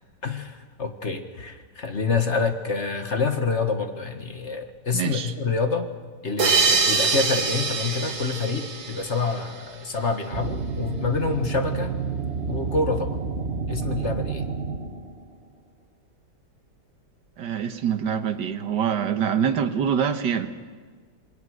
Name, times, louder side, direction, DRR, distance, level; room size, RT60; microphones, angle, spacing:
voice 1, 0.2-5.9 6.2-11.9 12.4-13.2 13.7-14.5, left 4 dB, 40° left, 6 dB, 1.8 m, -27 dB
voice 2, 4.9-5.3 17.4-20.5, right 8 dB, 90° right, 8 dB, 1.9 m, -25 dB
sound 1, 6.4-9.7, right 4 dB, 70° right, 2.3 m, -24 dB
sound 2, 10.3-15.4, right 5 dB, 45° right, 1.2 m, -30 dB
27.5 x 22.0 x 6.5 m, 1.5 s
omnidirectional pair, 1.8 m